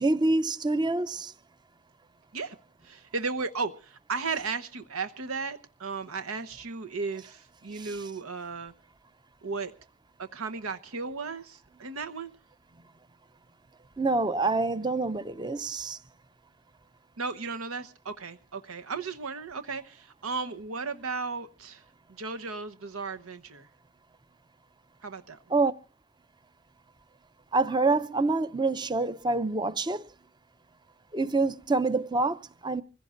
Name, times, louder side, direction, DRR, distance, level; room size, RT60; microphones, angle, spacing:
voice 1, 0.0-1.3 14.0-16.0 25.5-25.7 27.5-30.0 31.1-32.8, right 3 dB, 20° right, 0.6 m, -26 dB
voice 2, 2.8-8.7 9.4-9.7 10.2-12.3 17.2-21.8 22.1-23.7 25.0-25.4, right 4 dB, 90° right, 1.1 m, -35 dB
26.0 x 16.0 x 2.5 m
head